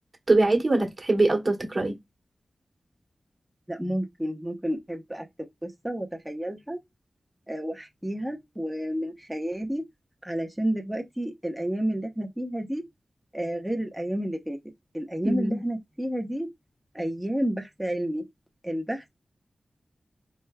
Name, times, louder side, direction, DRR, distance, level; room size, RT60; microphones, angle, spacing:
voice 1, 0.3-2.0 15.2-15.6, right 2 dB, 45° right, 1.4 m, -23 dB
voice 2, 3.7-5.3 5.6-6.8 7.5-9.8 10.2-12.8 13.3-14.6 14.9-16.5 16.9-18.2 18.6-19.1, right 1 dB, 5° right, 1.0 m, -30 dB
4.2 x 3.4 x 2.3 m
cardioid pair, 50°, 0 cm